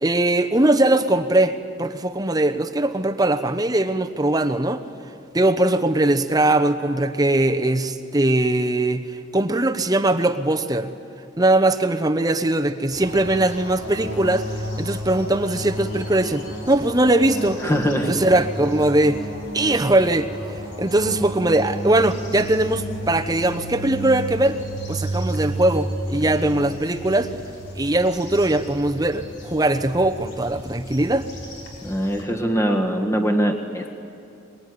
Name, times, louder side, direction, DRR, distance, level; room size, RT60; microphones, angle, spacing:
voice 1, 0.0-4.8 5.3-9.0 9.3-10.9 11.4-14.5 14.8-17.6 18.1-19.2 19.5-20.3 20.8-24.6 24.9-27.3 27.8-31.3, right 1 dB, 20° right, 7 dB, 0.9 m, -20 dB
sound 1, 12.9-32.2, equal, 75° left, 5.0 m, -33 dB
voice 2, 17.6-18.2 31.8-33.9, equal, 15° left, 4 dB, 1.7 m, -22 dB
23.0 x 22.0 x 9.6 m, 2.5 s
head